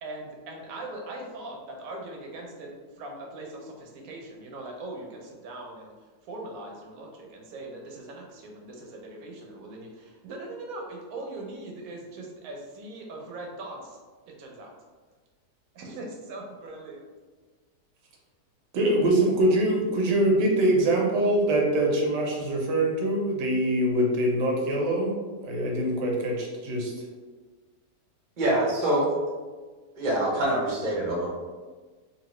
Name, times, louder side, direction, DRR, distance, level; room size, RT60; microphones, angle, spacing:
voice 1, 0.0-2.7 3.0-5.9 6.2-14.0 14.3-14.7 15.7-17.0, right 2 dB, 65° right, 0 dB, 1.0 m, -40 dB
voice 2, 18.7-25.1 25.4-27.0, right 1 dB, 85° right, -1 dB, 1.3 m, -24 dB
voice 3, 28.4-29.1 29.9-31.3, right 1 dB, 45° right, -4 dB, 0.5 m, -25 dB
2.9 x 2.7 x 3.0 m, 1.4 s
omnidirectional pair, 1.8 m